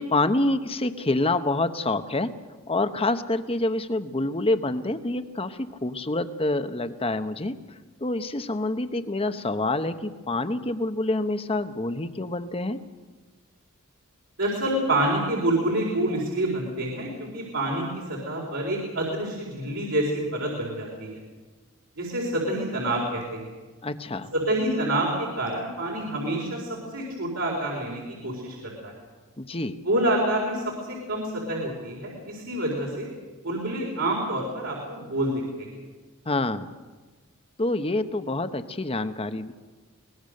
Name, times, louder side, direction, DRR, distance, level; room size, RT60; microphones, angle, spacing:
voice 1, 0.0-2.3 2.7-7.5 8.0-12.8 23.8-24.3 29.4-29.8 36.3-36.7 37.6-39.5, left 2 dB, 25° left, 10 dB, 1.0 m, -27 dB
voice 2, 14.4-21.2 22.0-23.5 24.3-28.9 29.8-33.1 33.4-35.3 35.6-35.7, right 1 dB, 70° right, -3 dB, 4.4 m, -27 dB
24.0 x 19.5 x 6.6 m, 1.3 s
head